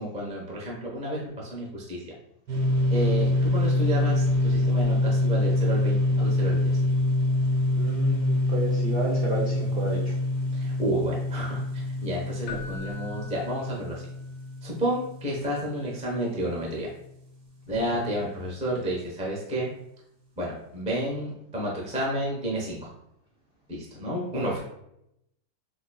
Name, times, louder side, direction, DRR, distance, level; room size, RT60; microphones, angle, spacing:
voice 1, 0.0-2.0 2.9-6.7 10.5-11.6 12.0-14.0 14.6-16.9 17.7-19.7 20.4-22.9 23.7-24.6, right 1 dB, 10° right, -4 dB, 0.3 m, -31 dB
sound 1, 2.5-16.0, left 2 dB, 85° right, 1.3 m, -25 dB
voice 2, 7.8-10.2 17.7-18.1, equal, 65° right, -4 dB, 0.6 m, -30 dB
Keyboard (musical), 12.5-14.4 17.7-17.8, left 5 dB, 90° left, 1.3 m, -43 dB
5.7 x 2.3 x 2.3 m, 0.80 s
omnidirectional pair, 1.8 m